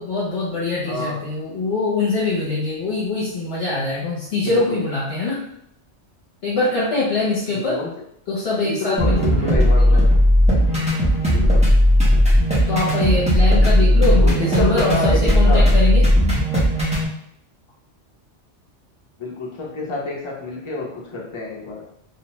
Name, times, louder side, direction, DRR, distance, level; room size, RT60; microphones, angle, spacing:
voice 1, 0.0-5.4 6.4-7.8 8.3-9.2 9.5-10.0 12.7-16.0, left 3 dB, 65° left, -7 dB, 0.9 m, -23 dB
voice 2, 0.9-1.2 4.3-4.8 7.5-7.9 8.6-10.1 11.3-11.6 13.6-15.6 19.2-21.8, left 3 dB, 35° left, -4 dB, 0.5 m, -28 dB
sound 1, 9.0-17.0, equal, 5° right, 0.6 m, -16 dB
2.5 x 2.1 x 2.9 m, 0.74 s
omnidirectional pair, 1.2 m